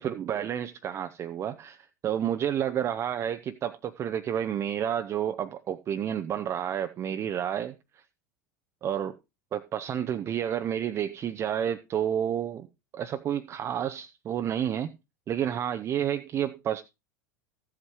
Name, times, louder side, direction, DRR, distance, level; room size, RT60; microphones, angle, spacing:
voice 1, 0.0-7.7 8.8-9.2 9.5-12.7 12.9-14.9 15.3-16.8, right 9 dB, 30° right, 0.6 m, -30 dB
14.5 x 8.0 x 3.1 m
figure-of-eight pair, 80°, 10 cm